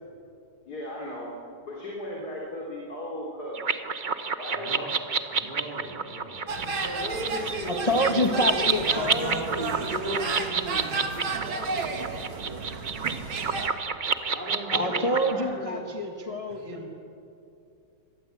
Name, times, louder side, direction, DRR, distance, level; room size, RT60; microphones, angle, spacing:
voice 1, 0.7-1.3 1.6-3.7 4.4-4.9 6.8-7.9 8.2-8.7 15.2-15.5, left 1 dB, 50° left, -3 dB, 3.8 m, -36 dB
sound 1, 3.5-15.3, right 5 dB, 50° right, 0.5 m, -29 dB
voice 2, 4.5-4.9 5.3-7.3 8.8-12.0 14.3-15.8 16.7-16.9, right 1 dB, 25° right, -5 dB, 3.4 m, -38 dB
sound 2, 6.5-13.7, right 4 dB, 85° right, 2.6 m, -32 dB
voice 3, 7.7-9.4 14.7-16.9, equal, 20° left, 2 dB, 1.3 m, -27 dB
25.0 x 18.5 x 8.1 m, 2.5 s
omnidirectional pair, 2.2 m